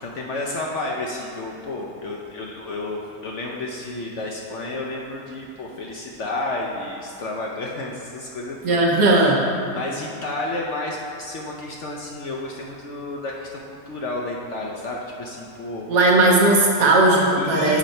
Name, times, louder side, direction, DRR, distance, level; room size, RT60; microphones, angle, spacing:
voice 1, 0.0-8.8 9.2-9.3 9.7-15.9 17.3-17.8, left 2 dB, 65° left, -2 dB, 0.7 m, -31 dB
voice 2, 8.6-9.4 15.9-17.8, right 2 dB, 65° right, -1 dB, 1.6 m, -17 dB
7.4 x 4.4 x 5.2 m, 2.4 s
omnidirectional pair, 1.9 m